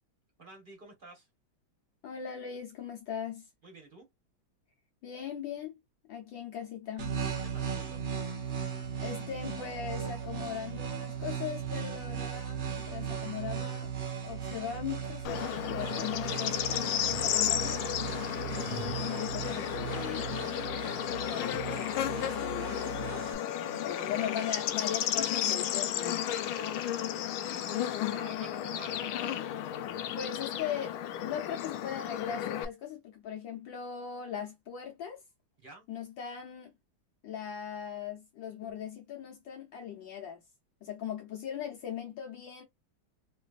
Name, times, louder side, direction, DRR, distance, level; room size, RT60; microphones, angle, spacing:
voice 1, 0.4-1.3 3.6-4.1 7.4-8.0 23.6-24.2 26.6-27.1 27.5-29.3 35.6-35.8, right 3 dB, 35° right, 1.0 m, -50 dB
voice 2, 2.0-3.5 5.0-5.8 6.1-7.2 9.0-13.9 14.2-17.8 18.6-20.4 21.2-23.4 23.8-26.6 30.1-35.2 35.9-36.7 37.2-40.4 40.8-42.6, left 8 dB, 70° left, 1.5 m, -39 dB
sound 1, 7.0-23.3, right 7 dB, 55° right, 0.8 m, -37 dB
Bird / Insect, 15.3-32.7, left 10 dB, 90° left, 1.4 m, -33 dB
3.3 x 3.1 x 2.4 m
omnidirectional pair, 2.3 m